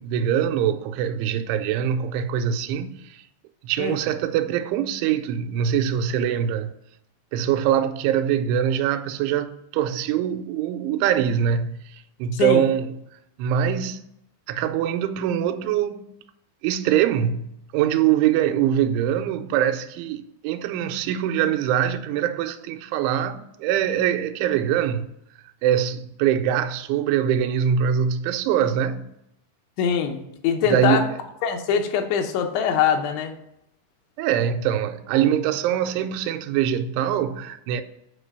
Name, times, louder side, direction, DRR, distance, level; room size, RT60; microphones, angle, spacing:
voice 1, 0.0-3.2 3.6-6.8 7.3-13.0 13.4-14.0 14.5-16.1 16.6-25.1 25.6-29.1 30.7-31.1 34.2-37.8, right 9 dB, 90° right, 3.0 m, -23 dB
voice 2, 12.3-12.7 29.8-31.0 31.4-33.3, left 7 dB, 80° left, 3.2 m, -23 dB
8.6 x 5.0 x 6.7 m
omnidirectional pair, 5.2 m